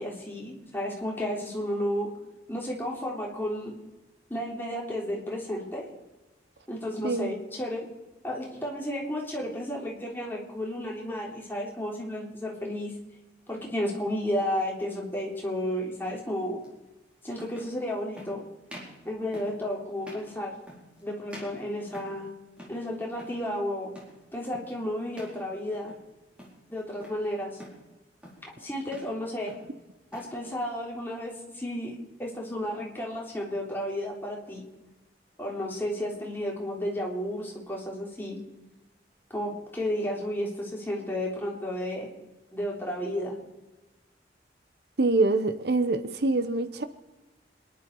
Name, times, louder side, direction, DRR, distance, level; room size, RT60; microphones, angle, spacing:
voice 1, 0.0-2.1 2.5-3.7 4.3-5.9 6.7-7.9 8.2-12.9 13.5-16.6 17.2-18.4 19.0-20.5 21.0-22.3 22.7-23.9 24.3-25.9 26.7-27.6 28.4-29.5 30.1-34.6 35.4-38.4 39.3-42.1 42.5-43.4, left 1 dB, 10° left, -2 dB, 3.4 m, -32 dB
sound 1, 15.1-15.3 16.6-16.7 17.3-17.8 18.1-18.4 18.7-19.0 19.3-19.6 20.0-20.3 20.7-21.0 21.3-22.3 22.6-22.9 23.1-23.4 23.9-24.2 24.5-24.8 25.1-25.4 25.7-26.1 26.4-27.2 27.6-27.9 28.2-28.5 28.8-29.2 29.5-30.3, equal, 5° right, 4.4 m, -47 dB
voice 2, 45.0-46.8, right 2 dB, 65° right, 11 dB, 0.9 m, -25 dB
26.5 x 11.0 x 4.7 m, 1.1 s
head